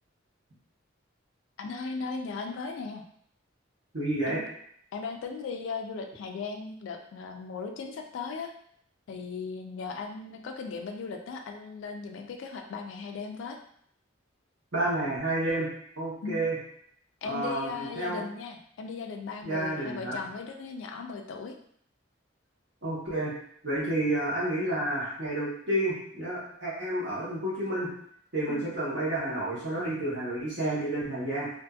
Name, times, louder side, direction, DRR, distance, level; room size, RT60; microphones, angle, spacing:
voice 1, 1.6-3.0 4.3-4.4 4.9-8.5 9.1-13.6 16.2-16.4 17.2-21.6 28.5-28.7, left 4 dB, 70° left, 3 dB, 0.3 m, -37 dB
voice 2, 3.9-4.4 14.7-15.7 16.0-16.5 17.2-18.2 19.4-20.2 22.8-23.3 23.6-27.9 28.3-31.5, right 1 dB, 60° right, -7 dB, 1.1 m, -30 dB
2.5 x 2.5 x 2.3 m, 0.66 s
head